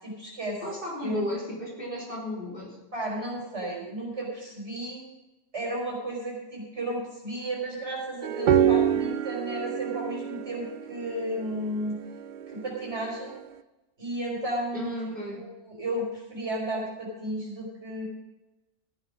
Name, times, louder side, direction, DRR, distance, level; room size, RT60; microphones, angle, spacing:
voice 1, 0.0-0.6 1.0-1.2 2.9-5.1 5.5-12.0 12.5-13.3 14.0-14.9 15.3-18.0, right 1 dB, 50° right, -3 dB, 5.4 m, -33 dB
voice 2, 0.6-2.8 14.7-15.5, left 1 dB, 40° left, -4 dB, 3.5 m, -34 dB
sound 1, 8.2-13.2, right 10 dB, 75° right, 0.4 m, -27 dB
14.5 x 9.5 x 5.5 m, 1.0 s
omnidirectional pair, 1.5 m